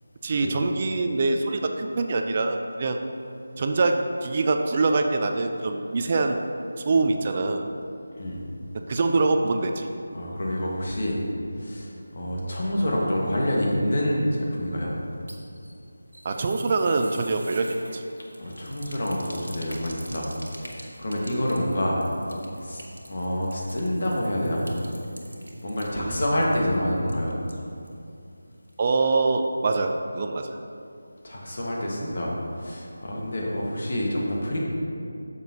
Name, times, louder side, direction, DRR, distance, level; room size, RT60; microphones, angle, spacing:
voice 1, 0.2-3.0 3.6-6.4 6.9-7.6 8.9-9.9 16.2-18.0 25.9-26.2 28.8-30.5, right 3 dB, 35° right, 5 dB, 0.4 m, -24 dB
voice 2, 10.1-11.2 11.6-14.9 18.4-20.3 20.6-22.0 22.6-24.7 25.6-27.3 31.2-34.6, equal, 50° left, -3 dB, 1.6 m, -27 dB
sound 1, 15.0-28.0 28.3-28.4 28.7-28.8, right 1 dB, 85° right, 1.2 m, -46 dB
8.9 x 6.8 x 2.9 m, 2.5 s
figure-of-eight pair, 160°, 0 cm